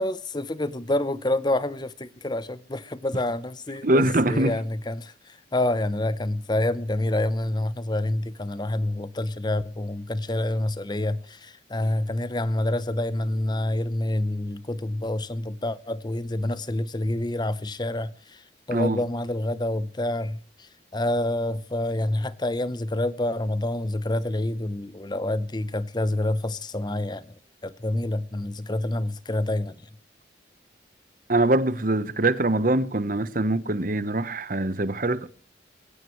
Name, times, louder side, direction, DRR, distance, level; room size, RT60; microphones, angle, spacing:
voice 1, 0.0-18.4 18.7-27.3 27.6-29.8, left 1 dB, 25° left, 0.8 m, -27 dB
voice 2, 3.8-4.5 18.7-19.0 31.3-35.3, right 2 dB, 50° right, 1.0 m, -23 dB
21.5 x 16.5 x 3.2 m
head